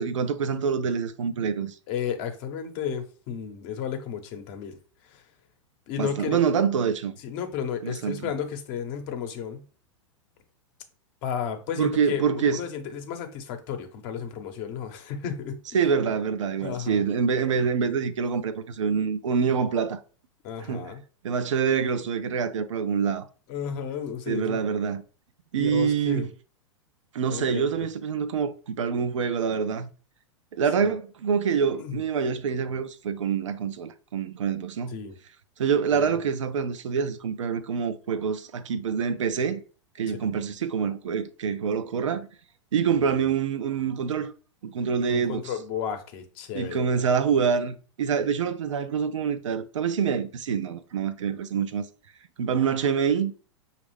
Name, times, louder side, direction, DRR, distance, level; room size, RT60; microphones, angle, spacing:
voice 1, 0.0-1.8 6.0-7.1 7.8-8.3 11.8-12.6 15.7-20.0 20.7-20.9 21.2-23.3 24.3-25.0 25.5-26.3 27.1-29.9 30.5-35.0 35.6-39.6 40.0-42.3 42.7-44.3 44.6-45.5 46.5-51.9 52.4-53.3, right 6 dB, 80° right, 0.5 m, -26 dB
voice 2, 1.9-4.8 5.0-5.2 5.9-6.4 7.2-9.7 11.2-15.6 16.6-17.0 18.2-18.3 20.4-21.0 23.5-24.6 25.6-26.3 27.3-27.8 30.8-30.9 31.7-31.9 34.9-35.1 35.9-36.2 40.2-40.3 45.1-47.0, left 8 dB, 45° left, 0.9 m, -33 dB
5.2 x 2.4 x 3.3 m
hypercardioid pair, 105°, 16 cm